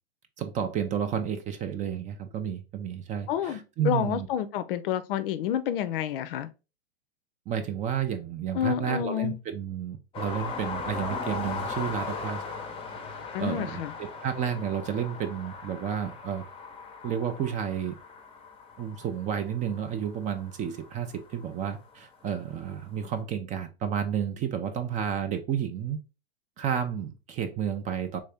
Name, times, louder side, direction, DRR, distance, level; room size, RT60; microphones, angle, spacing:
voice 1, 0.4-4.3 7.5-12.4 13.4-16.5 17.0-18.0 18.8-26.0 26.6-28.2, right 8 dB, 25° right, 0.4 m, -31 dB
voice 2, 3.3-6.5 8.5-9.4 13.3-13.9, left 10 dB, 60° left, 0.5 m, -29 dB
sound 1, 10.1-21.6 23.1-23.2, left 4 dB, 15° left, 0.7 m, -38 dB
3.4 x 2.7 x 3.4 m
hypercardioid pair, 110°, 32 cm